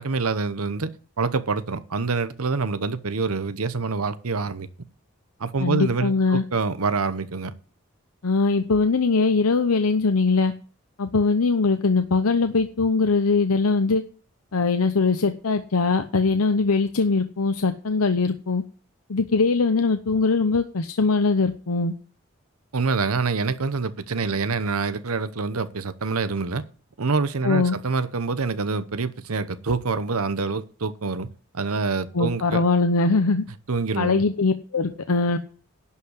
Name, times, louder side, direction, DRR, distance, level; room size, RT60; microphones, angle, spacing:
voice 1, 0.0-4.7 5.4-7.5 22.7-26.6 27.0-31.3 31.5-32.6 33.7-34.2, right 4 dB, 90° right, 0.9 m, -26 dB
voice 2, 5.6-6.4 8.2-10.5 11.0-14.0 14.5-18.6 19.1-21.9 27.4-27.8 32.1-33.4 34.0-35.4, left 4 dB, 90° left, 0.8 m, -21 dB
11.0 x 5.7 x 8.2 m
head